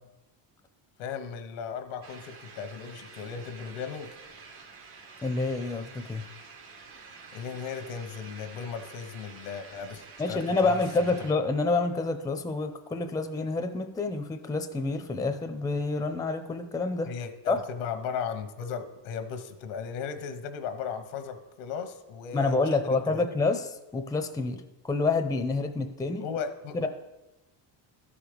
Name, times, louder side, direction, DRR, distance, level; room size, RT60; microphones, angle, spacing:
voice 1, 1.0-4.2 7.3-11.3 17.1-23.3 26.2-26.9, left 6 dB, 80° left, 9 dB, 1.1 m, -36 dB
sound 1, 2.0-11.3, right 4 dB, 70° right, 1.9 m, -48 dB
voice 2, 5.2-6.2 10.2-17.1 17.5-17.6 22.3-23.6 23.9-26.2 26.7-26.9, left 3 dB, 10° left, 7 dB, 0.6 m, -28 dB
12.5 x 5.0 x 5.1 m, 1.0 s
cardioid pair, 120°, 49 cm